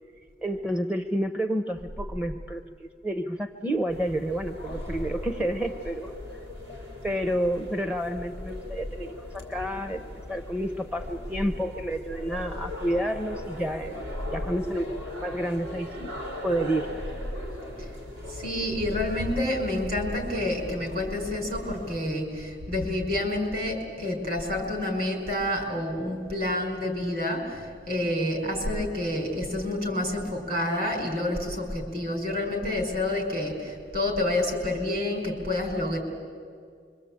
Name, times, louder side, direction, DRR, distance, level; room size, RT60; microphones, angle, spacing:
voice 1, 0.4-6.1 7.0-14.0 14.3-16.1 16.4-16.9, right 1 dB, 5° right, 8 dB, 0.7 m, -30 dB
sound 1, 3.9-22.0, left 1 dB, 75° right, 5.3 m, -39 dB
voice 2, 18.3-36.0, left 1 dB, 55° right, 3 dB, 5.2 m, -28 dB
26.0 x 24.0 x 8.7 m, 2.2 s
head